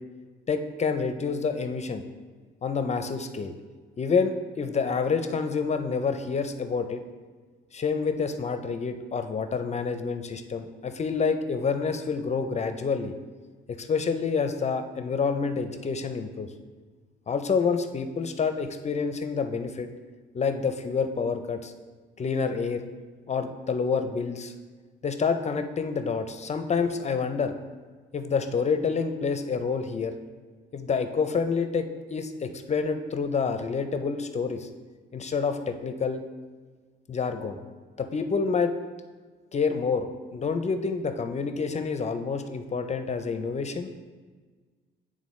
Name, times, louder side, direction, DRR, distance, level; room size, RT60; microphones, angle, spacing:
voice 1, 0.5-2.0 2.6-3.5 4.0-7.0 7.7-13.1 13.7-16.5 17.3-19.9 20.3-21.7 22.2-22.8 23.3-24.5 25.0-27.6 28.1-30.1 30.7-34.7 35.1-36.2 37.1-37.6 38.0-38.7 39.5-43.9, left 5 dB, 35° left, 8 dB, 0.5 m, -28 dB
10.5 x 3.7 x 3.1 m, 1.5 s
cardioid pair, 90°, 20 cm